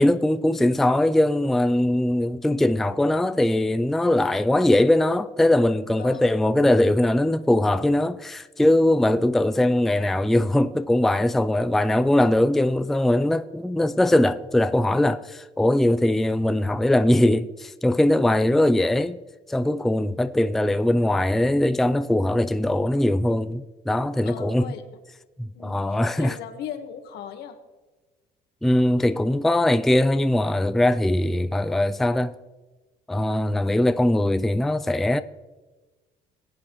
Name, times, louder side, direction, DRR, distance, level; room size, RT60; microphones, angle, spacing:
voice 1, 0.0-19.2 19.5-24.7 25.4-26.4 28.6-32.3 33.1-35.2, left 1 dB, ahead, 0.4 m, -21 dB
voice 2, 18.6-19.1 24.2-24.8 25.5-27.6, left 9 dB, 80° left, 1.5 m, -38 dB
21.0 x 8.4 x 3.1 m
cardioid pair, 110°, 17 cm